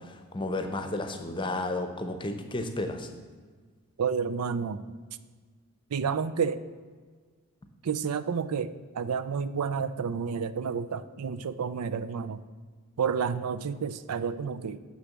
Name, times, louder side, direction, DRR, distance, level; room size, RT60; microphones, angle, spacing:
voice 1, 0.0-3.1, left 2 dB, 20° left, 6 dB, 0.8 m, -32 dB
voice 2, 4.0-4.8 5.9-6.6 7.8-12.4 13.0-14.8, right 6 dB, 85° right, 13 dB, 0.4 m, -30 dB
6.8 x 6.4 x 7.3 m, 1.5 s
head